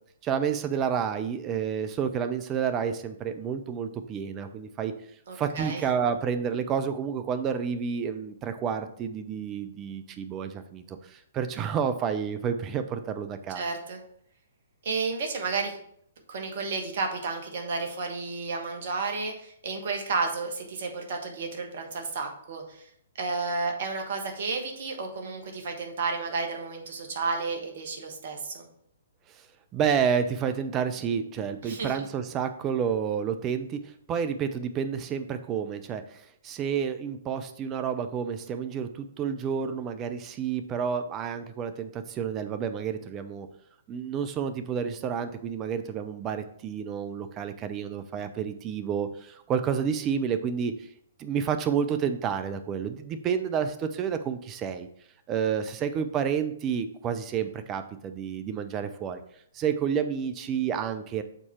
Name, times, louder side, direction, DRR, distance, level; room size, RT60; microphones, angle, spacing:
voice 1, 0.2-4.9 5.3-13.6 29.3-29.5 29.7-43.5 43.9-50.9 51.2-54.9 55.3-59.2 59.5-61.2, right 7 dB, 25° right, 9 dB, 0.6 m, -30 dB
voice 2, 5.3-5.8 13.5-14.0 14.8-15.8 16.3-22.9 23.2-28.7 31.6-31.9, right 4 dB, 50° right, 3 dB, 1.3 m, -32 dB
6.8 x 4.2 x 4.4 m, 0.68 s
figure-of-eight pair, 120°, 0 cm